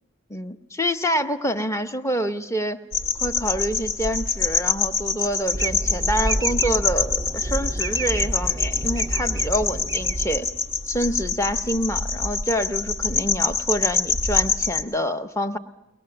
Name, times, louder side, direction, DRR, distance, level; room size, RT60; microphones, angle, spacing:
voice 1, 0.3-2.8 3.2-10.5 10.9-15.6, equal, 15° left, 8 dB, 0.8 m, -27 dB
sound 1, 2.9-14.8, left 4 dB, 65° left, 1.2 m, -25 dB
sound 2, 5.5-10.9, right 1 dB, 20° right, 0.7 m, -29 dB
22.5 x 19.0 x 7.8 m, 0.97 s
head